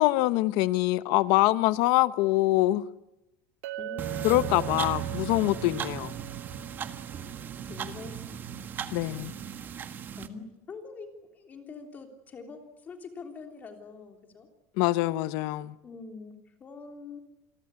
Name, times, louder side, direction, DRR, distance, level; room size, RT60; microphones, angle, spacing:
voice 1, 0.0-2.8 4.2-6.1 8.9-9.3 14.8-15.7, left 18 dB, 55° left, 1.1 m, -24 dB
Chink clink, 3.6-7.9, right 15 dB, 85° right, 1.3 m, -41 dB
voice 2, 3.8-4.8 7.7-9.4 10.2-14.5 15.8-17.2, left 4 dB, 20° left, 3.4 m, -45 dB
sound 1, 4.0-10.3, right 8 dB, 25° right, 1.5 m, -36 dB
28.0 x 22.5 x 8.4 m
cardioid pair, 170°, 8 cm